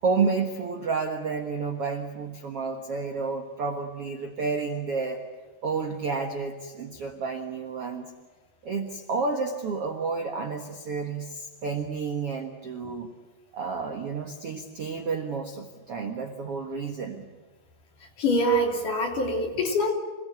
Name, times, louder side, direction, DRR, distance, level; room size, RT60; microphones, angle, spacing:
voice 1, 0.0-5.2 5.6-8.0 8.6-13.1 13.5-17.3, right 4 dB, 55° right, 4 dB, 1.6 m, -30 dB
voice 2, 18.2-19.9, equal, 50° left, 1 dB, 4.5 m, -24 dB
27.0 x 18.5 x 9.5 m, 1.3 s
omnidirectional pair, 4.8 m